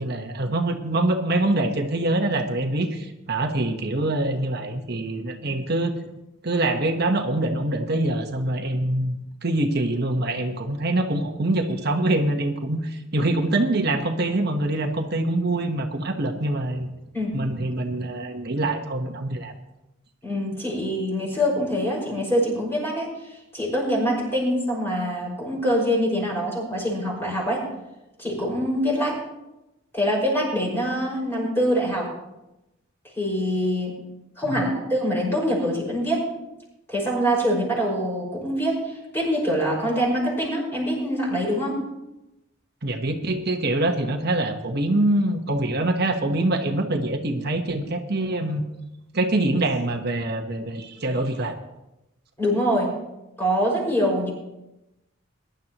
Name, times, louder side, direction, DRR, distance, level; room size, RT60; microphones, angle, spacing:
voice 1, 0.0-6.0 6.4-16.9 17.3-19.5 34.5-34.6 42.8-48.6 49.1-51.6, right 2 dB, 50° right, 4 dB, 1.2 m, -24 dB
voice 2, 20.2-27.7 28.2-29.2 29.9-32.1 33.2-33.9 34.4-36.3 36.9-41.8 52.4-52.9 53.4-54.3, equal, 10° left, -5 dB, 5.6 m, -24 dB
21.5 x 11.5 x 3.0 m, 0.94 s
head